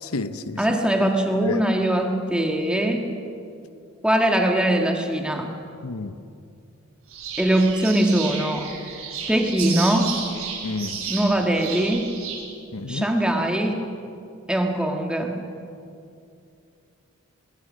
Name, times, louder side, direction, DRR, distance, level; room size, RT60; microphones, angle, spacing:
voice 1, 0.0-0.7 1.4-1.6 5.8-6.1 10.6-11.0 12.7-13.1, left 3 dB, 85° left, 13 dB, 0.9 m, -30 dB
voice 2, 0.6-3.1 4.0-5.5 7.4-8.7 9.3-10.1 11.1-12.1 12.9-13.8 14.5-15.4, right 1 dB, 5° right, 2 dB, 1.8 m, -21 dB
sound 1, 7.1-12.4, right 6 dB, 85° right, 5.9 m, -33 dB
21.5 x 21.5 x 6.4 m, 2.5 s
head